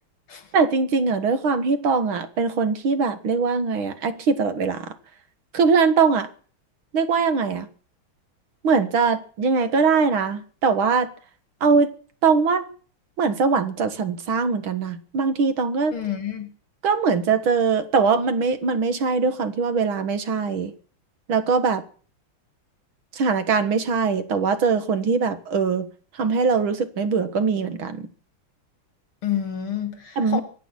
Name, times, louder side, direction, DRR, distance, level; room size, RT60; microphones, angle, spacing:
voice 1, 0.5-4.9 5.5-6.3 6.9-7.7 8.6-11.1 11.6-11.9 12.2-12.7 13.2-15.9 16.8-20.7 21.3-21.8 23.1-25.9 26.2-28.1 30.2-30.4, right 5 dB, 70° right, 2.3 m, -21 dB
voice 2, 15.9-16.5 29.2-30.4, left 10 dB, 75° left, 3.2 m, -28 dB
24.0 x 9.4 x 6.1 m
omnidirectional pair, 2.3 m